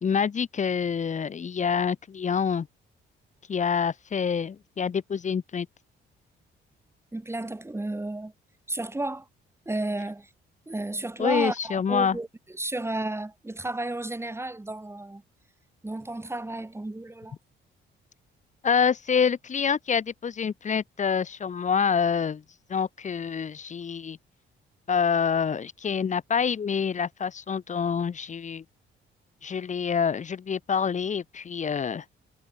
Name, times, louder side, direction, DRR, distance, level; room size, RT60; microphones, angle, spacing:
voice 1, 0.0-2.7 3.5-5.7 11.2-12.2 18.6-22.4 22.7-24.2 24.9-28.6 29.4-32.0, left 6 dB, 40° left, 1.0 m, -26 dB
voice 2, 7.1-8.3 8.7-9.3 9.7-10.3 10.7-15.2 15.8-17.3, right 2 dB, 10° right, 4.5 m, -32 dB
cardioid pair, 90°, 20 cm